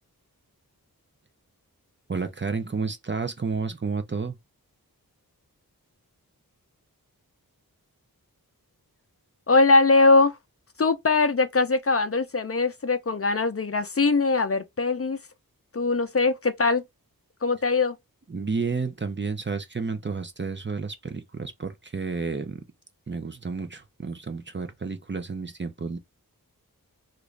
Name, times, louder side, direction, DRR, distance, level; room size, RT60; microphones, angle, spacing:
voice 1, 2.1-4.4 18.3-22.6 23.1-26.0, right 4 dB, 30° right, 0.6 m, -31 dB
voice 2, 9.5-10.3 10.8-15.2 15.7-16.8 17.4-18.0, left 3 dB, 40° left, 0.6 m, -21 dB
3.0 x 2.5 x 3.2 m
wide cardioid pair, 70°, 37 cm